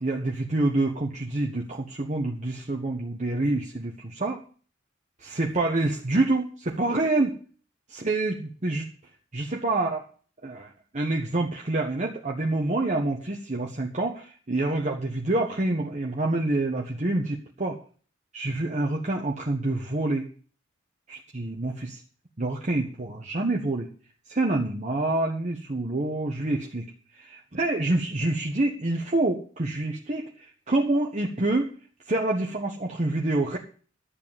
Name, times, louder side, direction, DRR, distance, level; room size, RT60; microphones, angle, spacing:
voice 1, 0.0-4.4 5.2-7.4 7.9-8.9 9.3-10.0 10.4-17.8 18.3-20.3 21.1-22.0 22.4-23.9 24.3-26.9 27.1-31.7 32.1-33.6, right 2 dB, 40° right, 0 dB, 1.4 m, -27 dB
12.0 x 7.6 x 7.4 m, 0.41 s
head